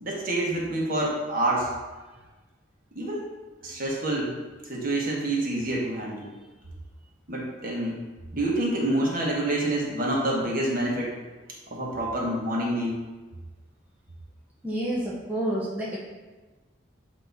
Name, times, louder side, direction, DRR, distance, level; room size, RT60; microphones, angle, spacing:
voice 1, 0.0-1.7 2.9-3.2 3.6-4.3 4.7-6.3 7.3-8.0 8.3-11.1 11.7-13.0, right 1 dB, 45° right, -3 dB, 1.2 m, -27 dB
voice 2, 14.6-16.0, right 1 dB, 10° right, -6 dB, 0.7 m, -29 dB
8.0 x 2.9 x 4.0 m, 1.2 s
head